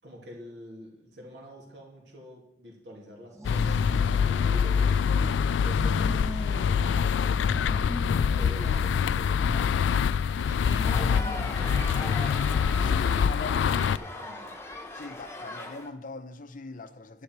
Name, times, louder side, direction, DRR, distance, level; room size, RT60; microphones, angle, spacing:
voice 1, 0.0-14.5, equal, 70° right, 2.8 m, -47 dB
sound 1, 3.3-5.4 5.7-7.1 7.4-9.1 9.4-12.6, right 1 dB, 15° right, 0.9 m, -41 dB
sound 2, 3.4-14.0, left 7 dB, 90° left, 0.3 m, -25 dB
sound 3, 10.8-15.9, left 2 dB, 15° left, 1.0 m, -39 dB
voice 2, 12.8-13.9 14.9-17.2, left 3 dB, 50° left, 0.7 m, -41 dB
10.5 x 9.9 x 4.7 m
head